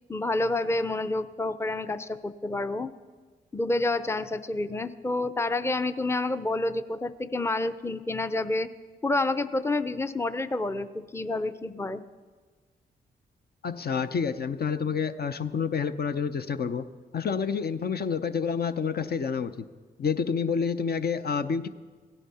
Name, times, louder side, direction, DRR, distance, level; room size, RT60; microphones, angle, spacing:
voice 1, 0.1-2.9 3.5-8.7 9.0-12.0, left 2 dB, 10° left, 12 dB, 0.6 m, -28 dB
voice 2, 13.6-16.8 17.1-19.6 20.0-21.7, left 6 dB, 50° left, 10 dB, 0.6 m, -28 dB
16.5 x 10.0 x 4.2 m, 1.4 s
hypercardioid pair, 40°, 21 cm